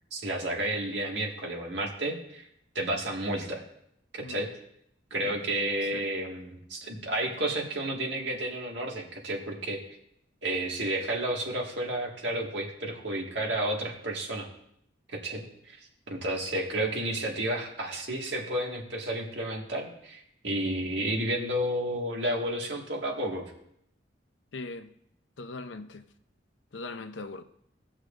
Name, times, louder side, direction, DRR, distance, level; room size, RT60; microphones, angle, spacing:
voice 1, 0.1-2.5 2.8-3.6 4.1-4.5 5.1-9.8 10.4-14.5 15.1-15.8 16.1-23.5, right 1 dB, 70° right, 1.9 m, -31 dB
voice 2, 24.5-24.9 25.4-26.0 26.7-27.4, left 3 dB, 85° left, 0.7 m, -40 dB
17.5 x 6.3 x 2.5 m
head